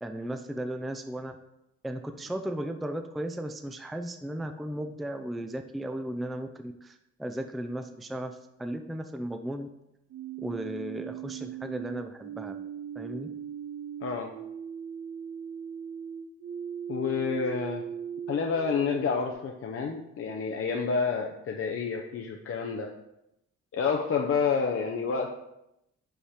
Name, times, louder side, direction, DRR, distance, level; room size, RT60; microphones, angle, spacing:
voice 1, 0.0-1.3 1.8-9.7 10.4-12.6 13.0-13.3, right 1 dB, ahead, 7 dB, 0.4 m, -36 dB
sound 1, 10.1-19.3, right 8 dB, 85° right, 0.6 m, -39 dB
voice 2, 16.9-17.8 18.3-22.9 23.7-25.3, left 5 dB, 45° left, 2 dB, 0.7 m, -29 dB
5.6 x 4.3 x 4.9 m, 0.86 s
cardioid pair, 90°, 30 cm